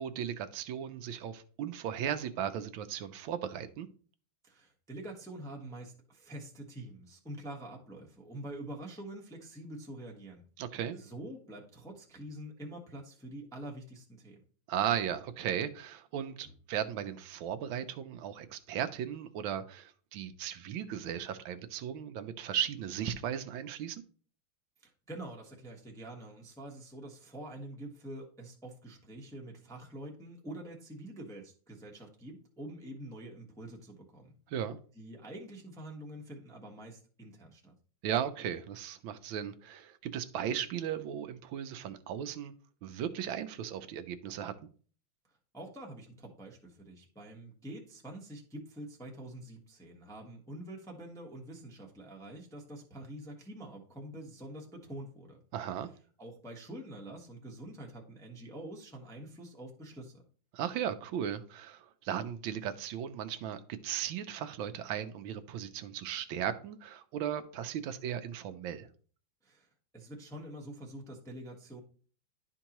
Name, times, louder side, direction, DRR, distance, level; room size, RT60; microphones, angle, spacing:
voice 1, 0.0-3.9 10.6-11.0 14.7-24.0 34.5-34.8 38.0-42.5 42.8-44.5 55.5-55.9 60.5-68.9, right 9 dB, 80° right, 1.4 m, -36 dB
voice 2, 4.4-10.4 10.9-14.4 16.4-16.5 24.8-34.3 34.9-37.7 45.5-55.4 56.2-60.2 69.4-69.7 69.9-71.8, right 1 dB, 5° left, 0.7 m, -46 dB
11.0 x 4.5 x 2.9 m
omnidirectional pair, 2.2 m